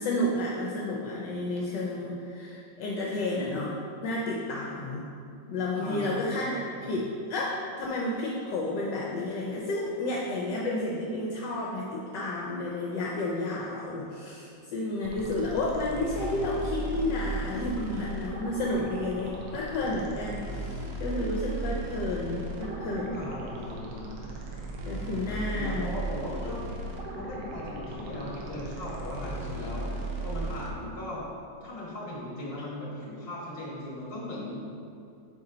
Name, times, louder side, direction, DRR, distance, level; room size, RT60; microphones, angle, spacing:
voice 1, 0.0-3.8 4.0-5.1 5.5-6.6 6.9-7.0 7.3-23.3 24.9-25.9, left 2 dB, 75° left, -4 dB, 1.2 m, -31 dB
voice 2, 5.8-6.5 6.8-6.9 23.1-24.2 25.4-26.6 27.1-29.9 30.2-31.2 31.6-34.6, left 1 dB, 35° left, -6 dB, 1.5 m, -38 dB
sound 1, 15.0-30.7, right 2 dB, 70° right, 1.2 m, -36 dB
5.9 x 4.2 x 3.8 m, 2.5 s
omnidirectional pair, 2.0 m